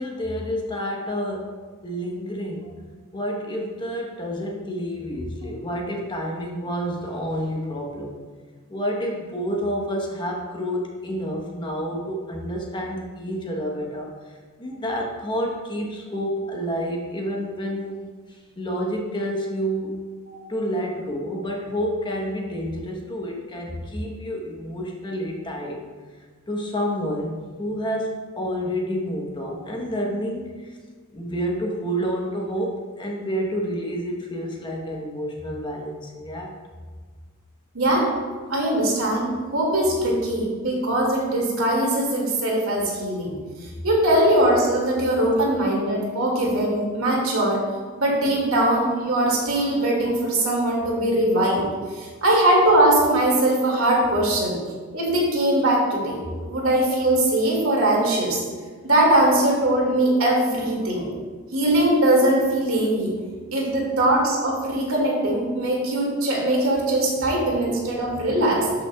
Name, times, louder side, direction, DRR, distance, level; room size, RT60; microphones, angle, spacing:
voice 1, 0.0-1.6 1.8-2.7 3.1-8.1 8.7-18.0 18.3-20.0 20.5-25.8 26.5-30.8 31.1-36.5, equal, 20° left, 0 dB, 1.0 m, -29 dB
voice 2, 37.7-38.1 38.5-43.3 43.6-47.6 48.0-51.6 51.9-54.6 54.9-58.4 58.8-61.1 61.5-63.1 63.5-68.7, right 1 dB, 80° right, -2 dB, 2.1 m, -21 dB
12.5 x 5.9 x 2.3 m, 1.5 s
head